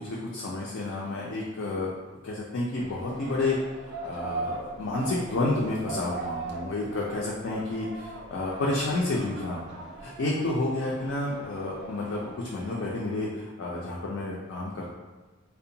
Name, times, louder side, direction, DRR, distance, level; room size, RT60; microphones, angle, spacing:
voice 1, 0.0-1.9 2.2-3.6 3.8-14.9, left 2 dB, 60° left, -4 dB, 0.4 m, -30 dB
sound 1, 2.8-13.0, right 3 dB, 50° right, 0.3 m, -40 dB
2.6 x 2.1 x 2.7 m, 1.3 s
head